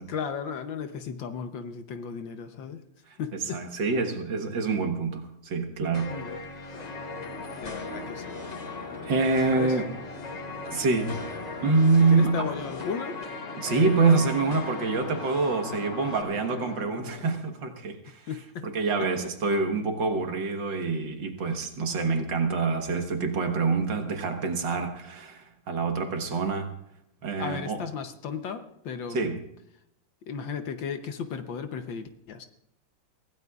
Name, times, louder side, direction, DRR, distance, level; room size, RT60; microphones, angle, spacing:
voice 1, 0.0-2.8 3.2-3.6 6.1-6.4 7.6-8.3 9.5-9.8 12.0-13.2 18.0-18.7 19.0-19.1 27.4-29.3 30.3-32.5, left 6 dB, 65° left, 8 dB, 1.5 m, -35 dB
voice 2, 3.5-6.2 9.0-9.9 10.7-11.2 11.6-12.5 13.6-18.2 18.6-26.7 27.2-27.8 29.1-29.4, right 4 dB, 60° right, 5 dB, 2.0 m, -26 dB
sound 1, 5.9-16.2, left 3 dB, 40° left, 0.6 m, -39 dB
sound 2, 6.7-17.3, left 5 dB, 80° left, 2.4 m, -42 dB
24.5 x 16.5 x 2.4 m, 0.79 s
omnidirectional pair, 2.4 m